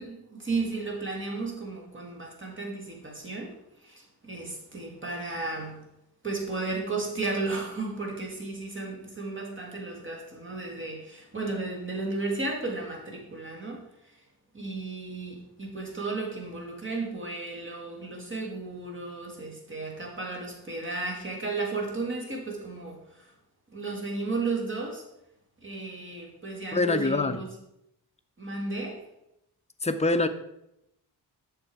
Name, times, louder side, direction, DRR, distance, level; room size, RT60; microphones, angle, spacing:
voice 1, 0.0-5.8 6.2-13.8 14.5-23.3 23.7-25.1 25.6-27.5 28.4-29.1, right 3 dB, 30° right, 0 dB, 2.0 m, -34 dB
voice 2, 26.7-27.4 29.8-30.3, left 3 dB, 15° left, 7 dB, 0.5 m, -24 dB
8.1 x 6.3 x 4.7 m, 0.82 s
wide cardioid pair, 135°, 41 cm